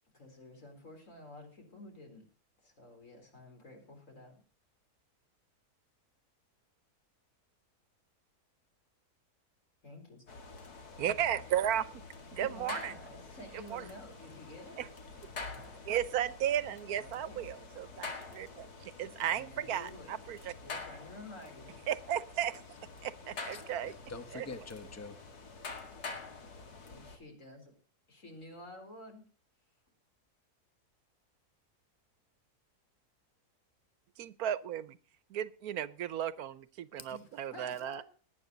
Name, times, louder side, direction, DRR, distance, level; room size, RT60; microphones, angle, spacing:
voice 1, 0.1-2.2 2.6-4.4 9.8-10.2 12.4-14.8 16.9-17.7 19.2-20.2 20.6-21.7 26.9-27.8 28.1-29.2 37.1-38.0, left 1 dB, 50° left, 3 dB, 4.4 m, -51 dB
sound 1, 10.3-27.2, left 3 dB, 75° left, 2.6 m, -47 dB
voice 2, 11.0-11.9 12.3-12.9 13.7-13.8 14.8-14.9 15.9-20.5 21.9-22.6 23.0-23.9 24.3-24.5 34.2-35.0 35.3-38.0, right 10 dB, 75° right, 17 dB, 1.2 m, -34 dB
voice 3, 23.5-25.2 37.0-37.1, left 3 dB, 10° left, 10 dB, 0.9 m, -45 dB
18.5 x 9.4 x 4.0 m, 0.39 s
omnidirectional pair, 1.7 m